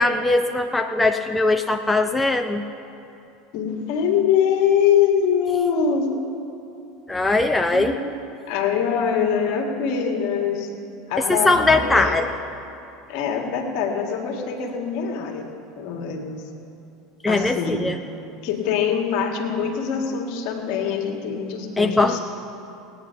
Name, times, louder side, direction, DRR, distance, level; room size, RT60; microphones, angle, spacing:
voice 1, 0.0-2.6 7.1-8.0 11.3-12.3 17.2-18.0 21.8-22.2, left 2 dB, 10° left, 5 dB, 0.7 m, -20 dB
voice 2, 3.5-6.1 7.5-8.1 8.5-10.7 11.1-12.2 13.1-15.5 15.8-16.4 17.3-17.9 18.4-22.2, left 7 dB, 60° left, 2 dB, 1.8 m, -23 dB
17.5 x 9.3 x 5.6 m, 2.8 s
hypercardioid pair, 80°, 0 cm